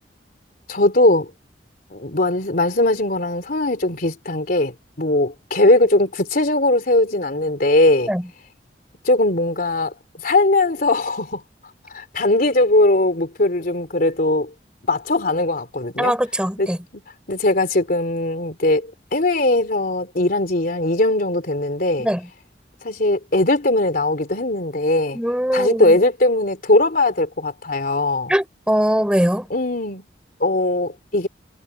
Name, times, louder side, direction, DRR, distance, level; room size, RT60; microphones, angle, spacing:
voice 1, 0.7-1.3 1.9-8.1 9.0-10.0 10.2-11.4 11.9-14.5 14.9-16.1 16.6-16.7 17.3-22.1 22.8-25.2 25.5-28.3 29.5-30.1 30.4-31.3, left 2 dB, 55° left, 3.3 m, -19 dB
voice 2, 16.0-16.8 22.0-22.3 25.1-26.0 28.3-29.5, equal, 5° right, 6.8 m, -21 dB
head